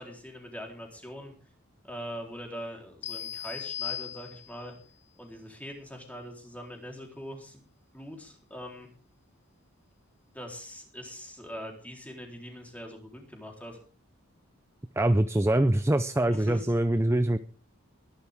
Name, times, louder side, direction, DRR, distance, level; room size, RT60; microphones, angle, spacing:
voice 1, 0.0-1.3 1.8-4.7 5.2-7.6 7.9-8.9 10.3-13.8 16.3-16.7, equal, 5° left, 1 dB, 4.0 m, -42 dB
sound 1, 3.0-4.8, left 9 dB, 55° left, 0.8 m, -37 dB
voice 2, 15.0-17.4, right 1 dB, 15° right, 11 dB, 0.6 m, -24 dB
21.5 x 11.5 x 3.7 m, 0.38 s
head